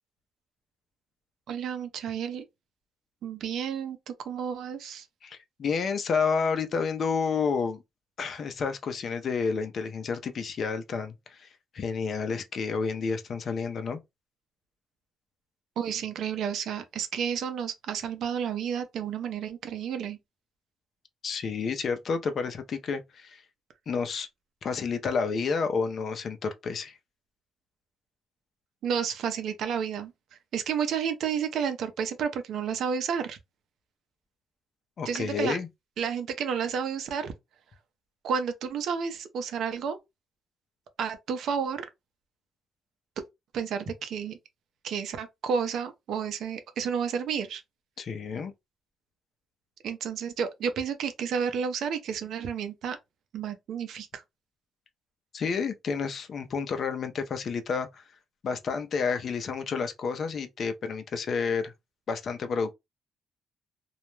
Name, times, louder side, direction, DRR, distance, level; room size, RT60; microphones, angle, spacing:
voice 1, 1.5-2.5 3.2-5.1 15.8-20.2 28.8-30.1 30.5-33.4 35.0-35.6 36.0-37.3 38.2-40.0 41.0-41.8 43.5-44.4 44.8-47.6 49.8-53.0 53.3-54.2, right 7 dB, 75° right, 0.5 m, -31 dB
voice 2, 5.2-7.8 8.2-11.5 11.7-14.0 21.2-23.4 23.9-24.3 24.6-27.0 35.0-35.7 48.0-48.5 55.3-58.0 58.4-61.7 62.1-62.7, left 5 dB, 55° left, 0.5 m, -30 dB
2.3 x 2.1 x 3.0 m
cardioid pair, 90°, 0 cm